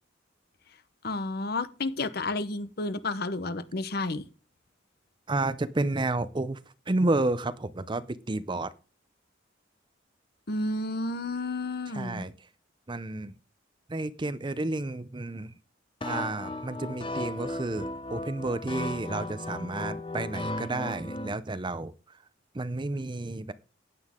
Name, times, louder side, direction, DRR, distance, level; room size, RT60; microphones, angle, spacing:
voice 1, 1.0-4.2 10.5-12.3, left 2 dB, 55° left, 0.9 m, -31 dB
voice 2, 5.3-6.6 6.9-8.7 11.9-12.3 12.9-13.3 13.9-15.5 16.0-21.9 22.5-23.5, right 2 dB, 25° right, 0.6 m, -31 dB
sound 1, 16.0-21.3, left 2 dB, 25° left, 0.7 m, -35 dB
15.0 x 9.4 x 3.7 m
head